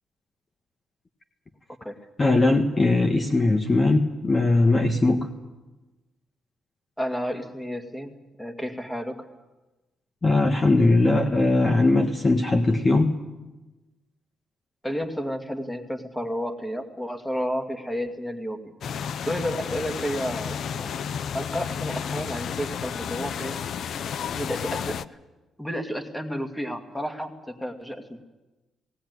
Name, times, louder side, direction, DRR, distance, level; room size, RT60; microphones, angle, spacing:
voice 1, 2.2-5.3 10.2-13.2, left 2 dB, 30° left, 4 dB, 1.5 m, -20 dB
voice 2, 7.0-9.3 14.8-18.7 19.3-20.9 21.3-23.6 24.3-25.0 25.6-28.2, equal, 5° left, 6 dB, 2.3 m, -31 dB
sound 1, 18.8-25.0, left 7 dB, 65° left, 0.7 m, -32 dB
19.0 x 18.0 x 9.5 m, 1.1 s
cardioid pair, 90°, 0 cm